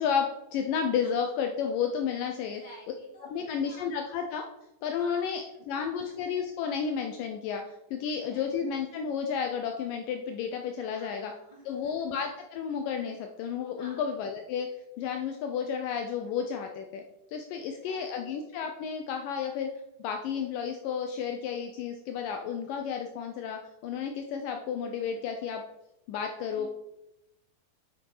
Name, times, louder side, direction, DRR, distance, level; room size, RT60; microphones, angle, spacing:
voice 1, 0.0-2.6 3.3-4.5 4.8-7.6 7.9-11.3 11.7-14.7 15.0-17.0 17.3-19.7 20.0-25.6 26.1-26.7, left 7 dB, 85° left, 4 dB, 1.9 m, -32 dB
voice 2, 2.3-3.9 5.0-6.1 8.1-8.5 10.9-12.1 13.8-14.1 17.6-18.3 26.5-26.7, equal, 15° left, -2 dB, 2.3 m, -53 dB
9.8 x 6.2 x 5.5 m, 0.88 s
omnidirectional pair, 4.9 m